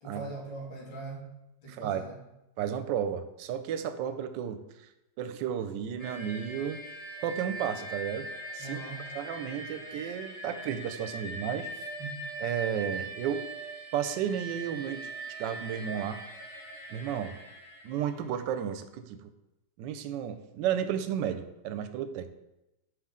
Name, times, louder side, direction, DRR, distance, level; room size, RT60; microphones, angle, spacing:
voice 1, 0.0-1.3 1.6-2.2 8.6-9.1 11.7-12.3, right 3 dB, 90° left, -3 dB, 2.4 m, -41 dB
voice 2, 1.7-2.0 2.6-4.9 5.2-6.8 7.2-8.3 8.5-8.8 9.1-11.7 12.4-13.4 13.9-16.2 16.9-17.4 17.8-19.3 19.8-22.3, right 9 dB, 75° right, 9 dB, 1.2 m, -33 dB
sound 1, 6.0-18.4, right 2 dB, 60° left, 2.1 m, -41 dB
5.8 x 5.3 x 3.6 m, 0.94 s
omnidirectional pair, 2.1 m